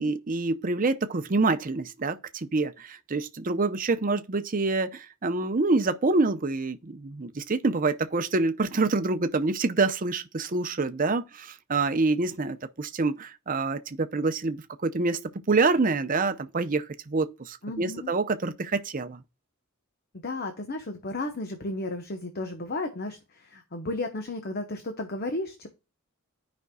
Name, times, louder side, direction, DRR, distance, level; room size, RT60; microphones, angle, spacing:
voice 1, 0.0-15.2 15.5-19.2, right 3 dB, 40° right, 0.7 m, -26 dB
voice 2, 17.6-18.1 20.2-25.7, left 2 dB, 45° left, 0.9 m, -33 dB
13.5 x 5.2 x 2.3 m
head